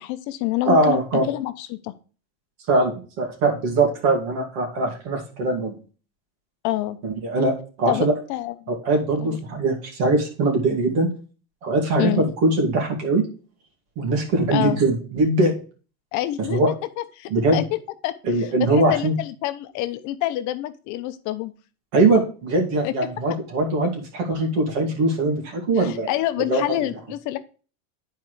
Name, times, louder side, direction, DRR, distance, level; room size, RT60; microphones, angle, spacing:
voice 1, 0.0-1.0 1.3-1.9 6.6-7.0 7.9-8.5 9.2-9.4 12.0-12.2 14.5-14.8 16.1-16.6 17.0-17.8 18.0-21.5 22.8-22.9 25.8-27.4, left 15 dB, 45° left, 11 dB, 0.8 m, -27 dB
voice 2, 0.7-1.3 2.7-5.8 7.0-8.1 8.7-11.1 11.6-13.3 14.0-15.6 16.4-16.7 17.3-17.6 18.3-19.1 21.9-26.1 26.5-26.8, right 2 dB, 60° right, 1 dB, 2.4 m, -21 dB
9.8 x 4.5 x 3.2 m, 0.36 s
supercardioid pair, 140°, 41 cm